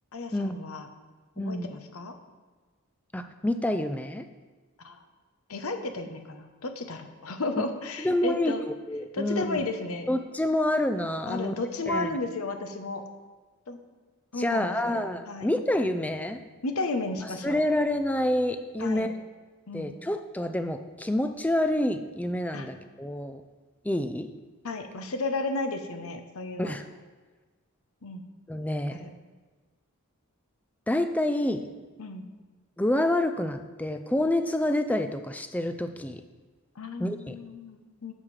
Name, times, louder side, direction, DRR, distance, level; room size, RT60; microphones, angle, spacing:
voice 1, 0.1-0.9 1.4-2.1 4.8-5.0 5.5-8.6 9.1-10.1 11.3-13.0 13.7-13.8 14.3-15.5 16.6-17.6 18.8-19.1 19.7-19.9 22.5-22.7 24.6-26.8 28.0-28.2 28.9-29.1 32.0-32.2 36.8-38.1, left 2 dB, 70° left, 6 dB, 0.9 m, -33 dB
voice 2, 1.4-1.7 3.1-4.2 8.0-9.6 10.1-11.5 11.9-12.1 14.4-16.4 17.4-19.1 19.7-23.4 23.8-24.3 26.6-26.8 28.5-29.1 30.9-31.7 32.8-36.2 37.0-37.4, left 1 dB, 5° left, 9 dB, 0.3 m, -28 dB
11.0 x 7.2 x 3.3 m, 1.3 s
head